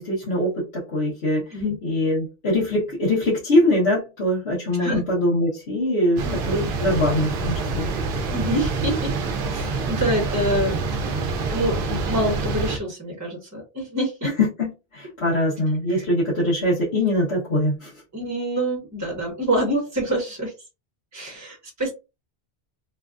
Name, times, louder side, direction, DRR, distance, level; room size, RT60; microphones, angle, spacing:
voice 1, 0.0-7.9 14.2-17.9, left 1 dB, 90° left, -7 dB, 1.5 m, -23 dB
sound 1, 6.2-12.8, right 3 dB, 65° right, 0.7 m, -26 dB
voice 2, 8.3-9.1 9.5-10.8 11.5-14.3 15.9-16.0 16.4-16.5 18.1-20.5 21.1-21.9, equal, 15° right, 0 dB, 1.1 m, -26 dB
3.2 x 2.3 x 2.4 m, 0.27 s
omnidirectional pair, 1.0 m